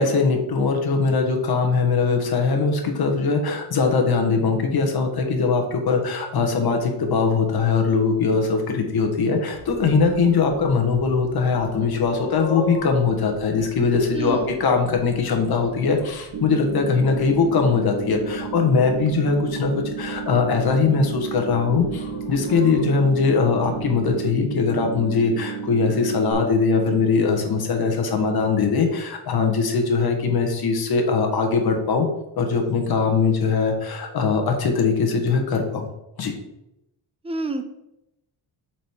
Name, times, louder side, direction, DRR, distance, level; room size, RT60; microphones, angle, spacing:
voice 1, 0.0-32.1 32.4-35.9 36.2-36.3, left 4 dB, 50° left, 3 dB, 1.2 m, -21 dB
sound 1, 9.5-24.4, left 1 dB, 75° left, 1.1 m, -40 dB
voice 2, 14.1-14.5 37.2-37.6, right 2 dB, 15° right, 7 dB, 0.5 m, -28 dB
sound 2, 16.3-26.3, right 6 dB, 65° right, 1.5 m, -32 dB
7.3 x 4.4 x 3.6 m, 0.88 s
wide cardioid pair, 160°, 48 cm